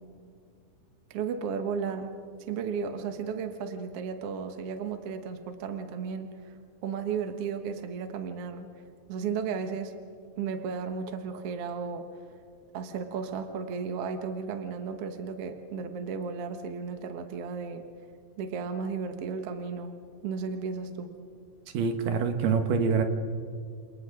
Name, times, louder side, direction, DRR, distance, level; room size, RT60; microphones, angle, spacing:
voice 1, 1.1-2.1 2.4-6.5 6.8-8.7 9.1-10.0 10.4-12.1 12.7-17.9 18.4-19.9 20.2-21.1, right 6 dB, 55° right, 7 dB, 1.8 m, -34 dB
voice 2, 21.7-23.0, right 5 dB, 75° right, 7 dB, 2.8 m, -25 dB
29.0 x 27.5 x 3.8 m, 2.3 s
omnidirectional pair, 4.0 m